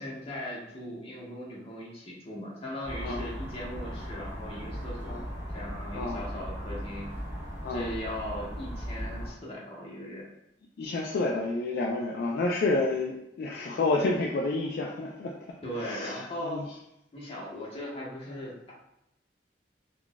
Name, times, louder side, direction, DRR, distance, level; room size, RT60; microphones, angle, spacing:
voice 1, 0.0-5.2 5.5-7.1 7.7-10.3 15.6-16.7 17.1-18.8, equal, 35° left, -5 dB, 0.9 m, -39 dB
sound 1, 2.8-9.3, equal, 15° right, 1.4 m, -38 dB
voice 2, 10.8-16.6, left 2 dB, 60° left, -1 dB, 0.3 m, -30 dB
3.8 x 2.3 x 2.2 m, 0.84 s
head